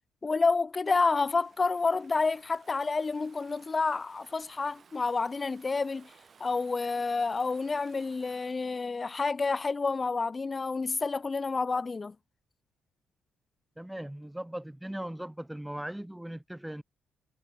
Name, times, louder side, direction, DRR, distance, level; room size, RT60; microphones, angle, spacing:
voice 1, 0.2-6.1 6.4-12.1, left 4 dB, 30° left, 0.7 m, -29 dB
Stream / Ocean, 1.4-8.7, right 6 dB, 45° right, 4.7 m, -59 dB
voice 2, 13.8-16.8, right 1 dB, 5° right, 0.4 m, -39 dB
cardioid pair, 90°, 0 cm